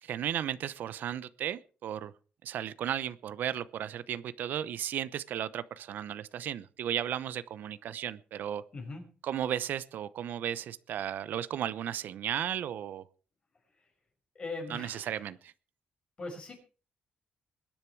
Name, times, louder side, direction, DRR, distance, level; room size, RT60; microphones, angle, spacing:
voice 1, 0.0-2.1 2.4-8.6 9.2-13.0 14.7-15.5, right 10 dB, 70° right, 0.8 m, -35 dB
voice 2, 8.7-9.1 13.8-13.9 14.3-15.3 16.2-16.6, left 3 dB, 35° left, 5.6 m, -40 dB
21.5 x 10.5 x 4.7 m
cardioid pair, 125°, 3 cm